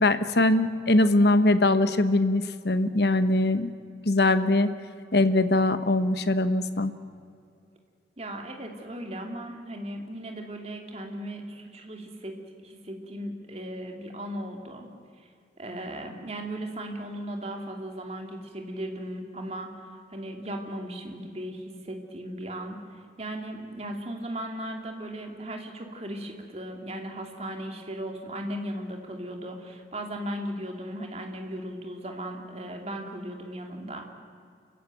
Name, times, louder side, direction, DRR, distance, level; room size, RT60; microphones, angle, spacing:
voice 1, 0.0-3.7 4.0-4.7 5.1-6.9, left 2 dB, 60° left, 11 dB, 1.1 m, -22 dB
voice 2, 8.2-12.3 12.6-14.9 15.6-34.1, right 1 dB, 35° right, 3 dB, 2.7 m, -37 dB
28.5 x 15.5 x 9.3 m, 2.4 s
head